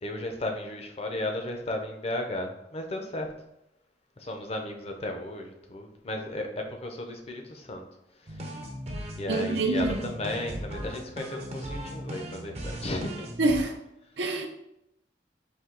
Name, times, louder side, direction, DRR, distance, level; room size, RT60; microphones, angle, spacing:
voice 1, 0.0-3.3 4.2-7.8 8.2-8.6 9.2-13.3, left 1 dB, 35° left, 0.5 m, -34 dB
sound 1, 8.3-13.6, equal, 35° right, 0.6 m, -38 dB
voice 2, 9.3-9.9 13.4-13.7 14.2-14.5, right 2 dB, 80° right, 0.6 m, -25 dB
4.3 x 2.7 x 3.8 m
head